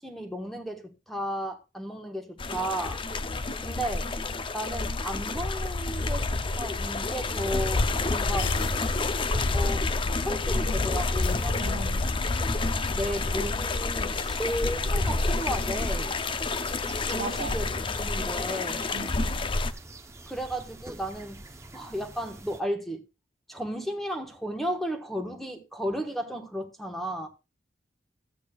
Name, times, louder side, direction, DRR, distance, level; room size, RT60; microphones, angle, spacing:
voice 1, 0.0-3.0 3.6-4.1 4.5-6.3 6.5-8.5 9.5-9.9 10.2-11.9 12.2-12.3 12.9-16.1 17.1-17.7 17.9-18.9 20.3-21.4 21.7-23.0 23.5-27.3, equal, ahead, 1.1 m, -34 dB
sound 1, 2.4-19.7, left 3 dB, 30° left, 0.5 m, -28 dB
sound 2, 7.0-7.1 8.4-9.1 9.4-9.5 11.2-12.1, left 11 dB, 80° left, 0.5 m, -42 dB
voice 2, 11.5-12.2 17.2-17.6 18.9-19.5, right 3 dB, 70° right, 1.0 m, -38 dB
sound 3, 14.1-22.6, right 2 dB, 15° right, 0.7 m, -47 dB
13.5 x 8.3 x 2.3 m
head